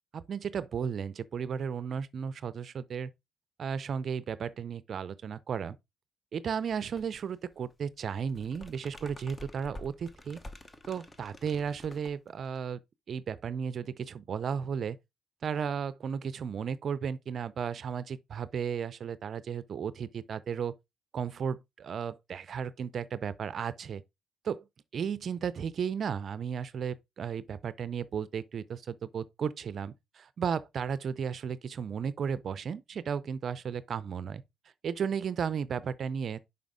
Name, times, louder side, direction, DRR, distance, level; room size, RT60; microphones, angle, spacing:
voice 1, 0.1-3.1 3.6-5.8 6.3-10.4 10.9-12.8 13.1-15.0 15.4-20.7 21.1-24.0 24.4-24.7 24.9-34.4 34.8-36.4, right 7 dB, 55° right, 0.4 m, -34 dB
sound 1, 6.6-7.2 7.5-12.7, left 1 dB, 20° left, 0.9 m, -49 dB
5.5 x 5.2 x 3.6 m
cardioid pair, 90°, 0 cm